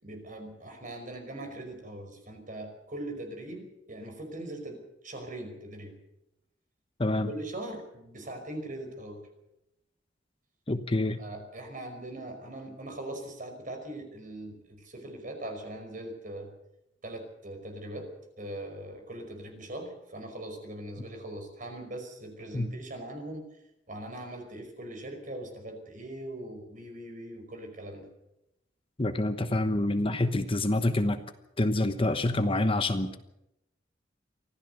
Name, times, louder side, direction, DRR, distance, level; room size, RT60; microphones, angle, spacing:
voice 1, 0.0-5.9 7.3-9.3 11.2-16.5 17.0-18.1 18.4-23.5 23.9-28.1, right 1 dB, 45° right, 5 dB, 5.3 m, -41 dB
voice 2, 7.0-7.3 10.7-11.2 22.5-22.7 29.0-31.2 31.6-33.2, left 1 dB, 30° left, 9 dB, 1.1 m, -27 dB
24.5 x 15.5 x 6.8 m, 0.85 s
head